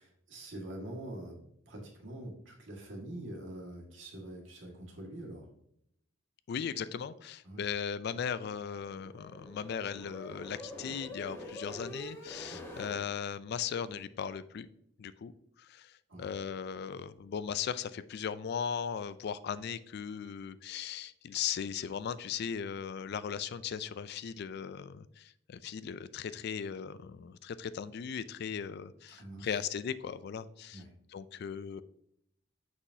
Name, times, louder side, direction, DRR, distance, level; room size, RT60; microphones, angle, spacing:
voice 1, 0.0-5.5 7.4-7.7 12.5-12.8 16.1-16.3 29.1-29.6 30.7-30.9, right 1 dB, 80° right, 0 dB, 1.8 m, -45 dB
voice 2, 6.5-14.7 15.0-15.3 15.6-30.8 31.1-31.8, left 7 dB, 55° left, 15 dB, 0.3 m, -38 dB
sound 1, 8.3-13.0, left 1 dB, 15° left, 1.1 m, -46 dB
6.0 x 5.9 x 2.7 m, 0.73 s
head